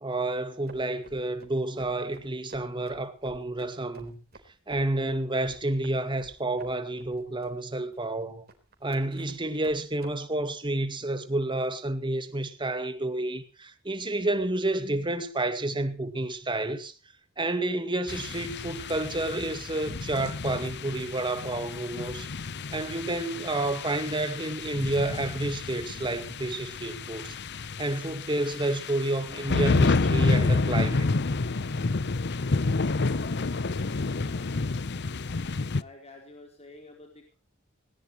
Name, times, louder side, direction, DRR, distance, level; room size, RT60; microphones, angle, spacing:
voice 1, 0.0-4.2 4.7-8.5 8.8-16.9 17.4-22.3 22.7-27.4 27.8-31.1, right 2 dB, 25° right, 2.1 m, -30 dB
sound 1, 0.7-10.1, right 2 dB, 50° right, 3.8 m, -51 dB
sound 2, 18.1-35.8, left 3 dB, 55° left, 0.8 m, -29 dB
voice 2, 33.2-35.1 35.7-37.3, left 2 dB, 30° left, 4.1 m, -51 dB
20.0 x 18.5 x 3.1 m
head